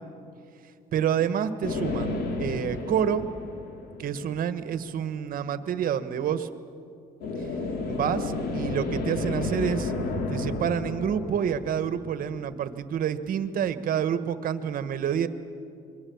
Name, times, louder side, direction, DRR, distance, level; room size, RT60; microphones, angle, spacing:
voice 1, 0.9-3.3 4.0-6.5 7.9-9.9 10.3-15.3, right 8 dB, 55° right, 11 dB, 1.4 m, -28 dB
sound 1, 1.6-4.4 7.2-12.6, left 3 dB, 70° left, 2.9 m, -32 dB
27.0 x 22.5 x 7.2 m, 2.6 s
cardioid pair, 110°, 17 cm